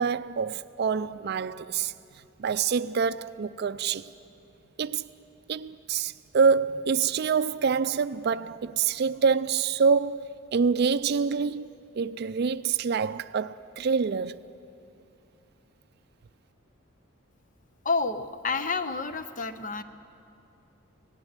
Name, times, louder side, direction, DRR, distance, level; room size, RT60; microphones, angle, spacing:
voice 1, 0.0-1.9 2.4-4.1 4.8-5.1 5.5-11.7 12.0-14.4, right 5 dB, 50° right, 0.4 m, -26 dB
voice 2, 17.8-19.8, left 4 dB, 40° left, 0.7 m, -29 dB
18.0 x 16.5 x 9.6 m
head